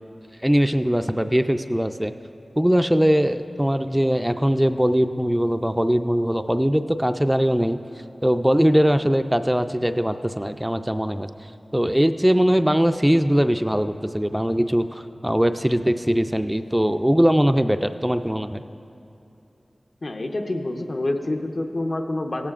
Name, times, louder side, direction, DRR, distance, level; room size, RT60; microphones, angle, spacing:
voice 1, 0.4-2.1 2.6-7.8 8.2-11.3 11.7-18.6, equal, 5° right, 8 dB, 0.3 m, -21 dB
voice 2, 20.0-22.5, left 2 dB, 60° left, 4 dB, 0.8 m, -27 dB
16.5 x 14.5 x 2.5 m, 2.7 s
wide cardioid pair, 55°, 0 cm